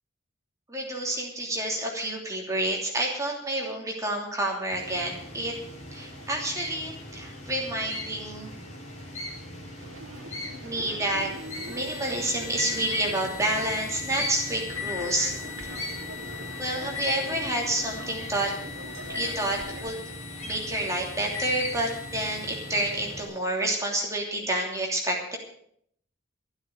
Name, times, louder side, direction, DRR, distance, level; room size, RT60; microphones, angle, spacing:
voice 1, 0.7-5.6 5.9-8.5 10.6-11.3 11.7-15.3 15.6-15.8 16.6-18.5 19.1-20.0 20.4-25.4, right 1 dB, 15° right, -1 dB, 2.9 m, -29 dB
sound 1, 4.7-23.2, left 1 dB, 35° left, 3.5 m, -40 dB
sound 2, 9.8-19.9, right 1 dB, 85° right, 2.1 m, -42 dB
sound 3, 11.2-23.3, left 9 dB, 15° left, 5.5 m, -40 dB
13.0 x 12.5 x 6.5 m, 0.65 s
head